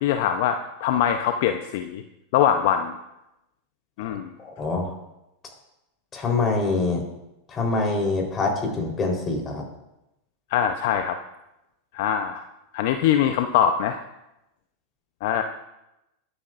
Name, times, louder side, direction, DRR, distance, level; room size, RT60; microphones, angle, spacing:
voice 1, 0.0-2.0 2.3-2.9 4.0-4.3 10.5-11.2 11.9-12.4 12.7-14.0 15.2-15.4, left 9 dB, 60° left, 7 dB, 0.7 m, -22 dB
voice 2, 4.0-4.9 6.1-7.0 7.5-9.6, left 3 dB, 30° left, 1 dB, 3.8 m, -25 dB
21.5 x 9.7 x 2.6 m, 0.90 s
hypercardioid pair, 100°, 0 cm